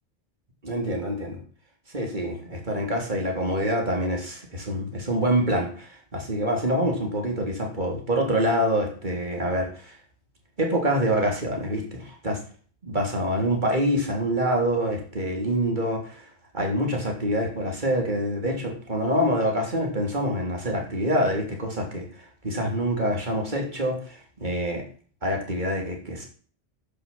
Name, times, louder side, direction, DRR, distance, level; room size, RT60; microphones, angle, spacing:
voice 1, 0.6-1.4 1.9-10.0 10.6-12.4 12.8-16.3 16.5-24.8 25.2-26.3, equal, 45° right, 1 dB, 3.5 m, -26 dB
10.5 x 7.0 x 7.7 m, 0.43 s
omnidirectional pair, 1.1 m